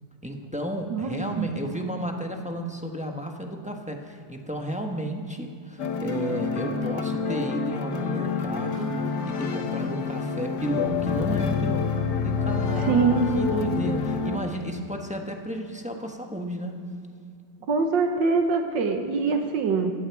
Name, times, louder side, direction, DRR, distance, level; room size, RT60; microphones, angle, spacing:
voice 1, 0.2-11.9 12.2-13.1 13.3-16.8, equal, 5° right, 2 dB, 0.9 m, -33 dB
voice 2, 0.9-1.5 12.9-13.3 17.7-19.9, right 4 dB, 85° right, 5 dB, 1.9 m, -23 dB
sound 1, 5.8-14.4, left 5 dB, 65° left, 1.7 m, -27 dB
16.5 x 16.0 x 4.8 m, 2.4 s
omnidirectional pair, 1.9 m